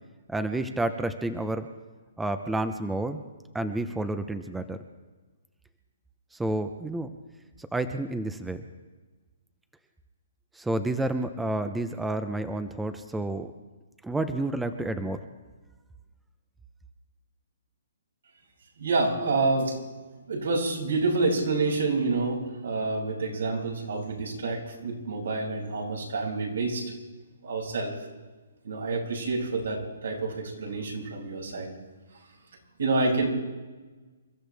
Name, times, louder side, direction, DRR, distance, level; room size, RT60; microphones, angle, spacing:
voice 1, 0.3-1.7 2.2-3.2 3.5-4.8 6.3-7.1 7.6-8.6 10.5-13.5 14.0-15.2, right 2 dB, 5° right, 9 dB, 0.8 m, -30 dB
voice 2, 18.8-19.8 20.3-26.9 27.4-27.9 28.6-31.7 32.8-33.3, right 3 dB, 80° right, -1 dB, 6.4 m, -28 dB
28.5 x 14.0 x 3.5 m, 1.3 s
hypercardioid pair, 150°, 0 cm